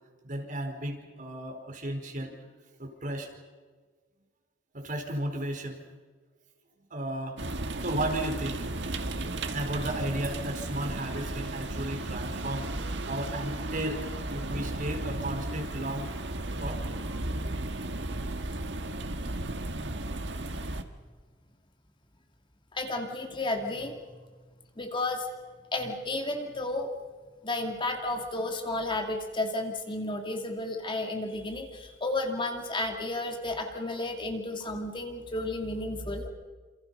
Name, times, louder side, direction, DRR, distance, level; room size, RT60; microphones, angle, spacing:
voice 1, 0.2-2.3 2.8-3.3 4.7-5.8 6.9-7.4 7.8-8.7 9.5-12.7 13.1-16.1 16.6-16.8, right 1 dB, 45° right, 4 dB, 4.4 m, -34 dB
sound 1, 7.4-20.8, right 2 dB, 75° right, 1.7 m, -34 dB
voice 2, 22.7-23.9 24.8-25.3 25.7-26.9 27.4-36.3, left 2 dB, 30° left, 4 dB, 2.4 m, -32 dB
28.0 x 28.0 x 5.5 m, 1.4 s
head